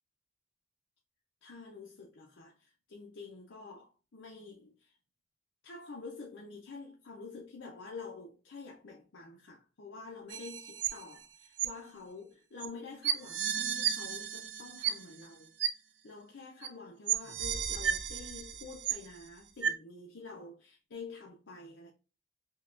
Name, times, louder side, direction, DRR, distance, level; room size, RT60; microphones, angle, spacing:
voice 1, 1.4-5.0 5.6-15.5 16.0-21.9, left 4 dB, 90° left, 0.6 m, -48 dB
sound 1, 10.3-11.2 11.6-11.7 12.6-12.7 13.0-15.3 15.6-15.7 16.6-16.7 17.1-19.2 19.6-19.7, right 9 dB, 70° right, 0.4 m, -33 dB
5.5 x 2.3 x 2.4 m
head